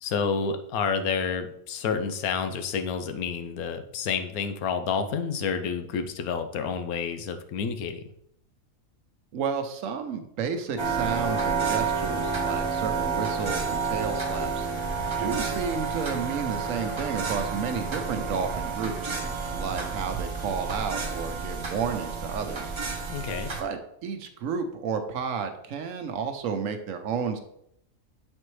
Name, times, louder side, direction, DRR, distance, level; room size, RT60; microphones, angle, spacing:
voice 1, 0.0-8.0 23.1-23.5, left 6 dB, 90° left, 8 dB, 1.1 m, -29 dB
voice 2, 9.3-14.7 15.2-19.2 19.5-22.7 23.6-27.4, right 6 dB, 70° right, 7 dB, 1.0 m, -32 dB
Dog, 10.6-15.8, left 2 dB, 15° left, 0.6 m, -39 dB
sound 1, 10.8-23.6, right 5 dB, 30° right, 0.5 m, -30 dB
7.5 x 4.3 x 3.1 m, 0.74 s
omnidirectional pair, 1.5 m